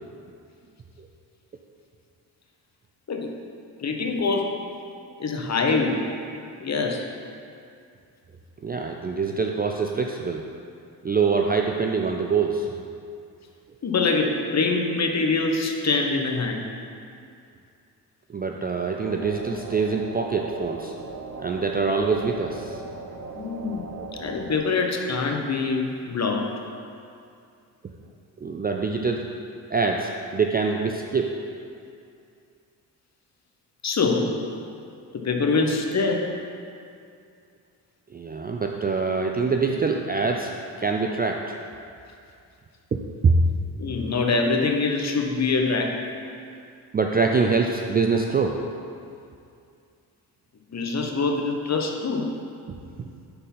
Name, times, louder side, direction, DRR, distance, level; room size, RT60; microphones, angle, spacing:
voice 1, 3.8-4.5 5.2-6.0 6.6-7.0 13.8-16.6 23.3-23.8 24.2-26.5 33.8-34.3 35.1-36.2 43.8-45.9 50.7-52.3, left 4 dB, 35° left, 2 dB, 0.9 m, -24 dB
voice 2, 8.6-10.5 11.0-12.8 18.3-20.9 21.4-22.8 28.4-29.2 29.7-31.4 38.1-41.5 42.9-43.4 46.9-48.6, right 4 dB, 20° right, 2 dB, 0.4 m, -24 dB
sound 1, 19.0-24.6, right 4 dB, 40° right, 0.8 m, -38 dB
5.8 x 4.1 x 5.4 m, 2.4 s
supercardioid pair, 50°, 45 cm